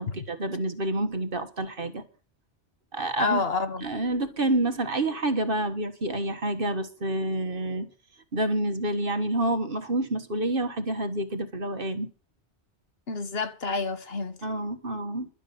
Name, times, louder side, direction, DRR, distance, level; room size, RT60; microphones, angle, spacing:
voice 1, 0.0-2.0 2.9-3.4 3.8-7.9 8.3-12.1 14.4-15.3, right 1 dB, 50° right, 1.7 m, -28 dB
voice 2, 3.2-3.9 13.1-14.4, left 4 dB, 60° left, 1.5 m, -29 dB
12.0 x 9.9 x 7.0 m
omnidirectional pair, 1.2 m